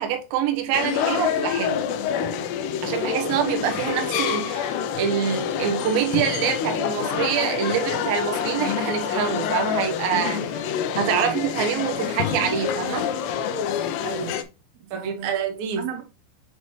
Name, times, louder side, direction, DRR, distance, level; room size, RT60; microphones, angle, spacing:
voice 1, 0.0-1.8 2.8-10.6 10.9-13.1 14.9-15.9, right 8 dB, 85° right, 2.1 m, -26 dB
sound 1, 0.7-14.4, left 8 dB, 90° left, 2.3 m, -27 dB
voice 2, 11.0-11.4 14.0-14.5 14.8-15.3 15.8-16.0, right 7 dB, 70° right, 3.1 m, -36 dB
7.8 x 4.2 x 3.1 m
omnidirectional pair, 5.4 m